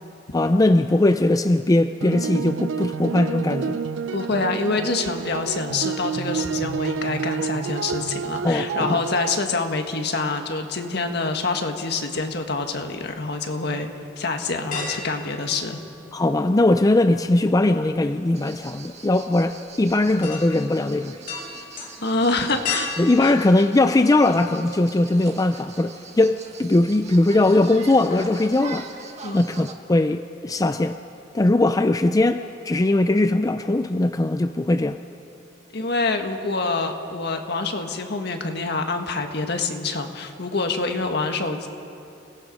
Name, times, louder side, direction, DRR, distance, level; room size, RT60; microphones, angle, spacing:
voice 1, 0.3-3.8 8.4-9.0 16.1-21.1 23.0-28.9 29.3-31.0 31.3-35.0, left 2 dB, 20° left, 9 dB, 0.4 m, -20 dB
sound 1, 2.0-9.4, right 6 dB, 85° right, 0.5 m, -29 dB
voice 2, 4.1-13.9 14.2-15.8 22.0-22.9 23.2-23.4 29.2-29.5 35.7-41.7, left 3 dB, 60° left, 5 dB, 1.6 m, -26 dB
sound 2, 14.7-16.4 16.7-24.6 25.0-25.1 26.6-27.1 27.4-27.6 27.9-28.5 28.8-28.9, left 5 dB, 45° left, 3.5 m, -36 dB
sound 3, 18.3-29.7, right 5 dB, 35° right, 1.5 m, -43 dB
29.0 x 17.5 x 5.4 m, 2.7 s
head